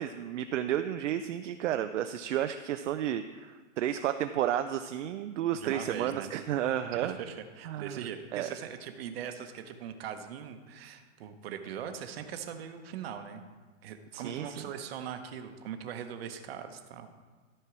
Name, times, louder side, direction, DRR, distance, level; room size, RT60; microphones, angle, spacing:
voice 1, 0.0-7.2 7.7-8.0 8.3-8.5 14.1-14.7, right 11 dB, 65° right, 9 dB, 0.5 m, -32 dB
voice 2, 5.5-6.3 6.9-13.4 13.8-17.1, right 8 dB, 50° right, 7 dB, 1.0 m, -41 dB
13.0 x 4.5 x 6.0 m, 1.4 s
hypercardioid pair, 160°, 39 cm